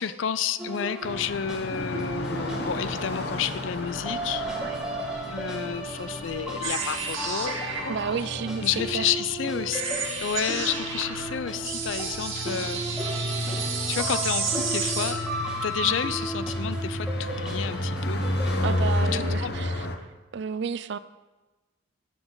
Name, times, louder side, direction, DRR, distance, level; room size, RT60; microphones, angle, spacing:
voice 1, 0.0-4.5 5.3-7.9 8.6-9.8 10.2-12.8 13.9-15.2 15.6-18.2 19.1-19.5, left 8 dB, 65° left, 14 dB, 0.4 m, -30 dB
sound 1, 0.6-19.3, right 1 dB, 5° right, 1.3 m, -35 dB
sound 2, 1.0-20.0, left 1 dB, 50° left, 0.8 m, -33 dB
sound 3, 6.6-15.1, right 5 dB, 80° right, 1.7 m, -32 dB
voice 2, 7.9-8.7 8.9-9.1 15.8-16.0 18.6-19.9 20.3-21.0, right 6 dB, 55° right, 14 dB, 0.4 m, -31 dB
15.0 x 6.1 x 3.9 m, 1.2 s
head